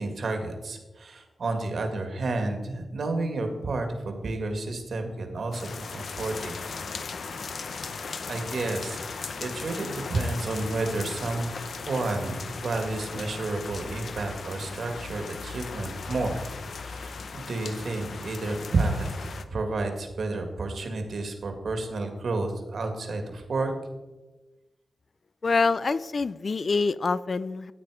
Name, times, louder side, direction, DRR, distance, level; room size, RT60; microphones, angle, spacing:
voice 1, 0.0-6.6 7.9-9.0 9.4-23.7, right 2 dB, 60° right, 5 dB, 2.0 m, -31 dB
sound 1, 5.5-19.5, left 4 dB, 60° left, 0.9 m, -37 dB
voice 2, 25.4-27.7, left 4 dB, 40° left, 16 dB, 0.4 m, -25 dB
15.0 x 8.9 x 4.9 m, 1.1 s
wide cardioid pair, 150°, 0 cm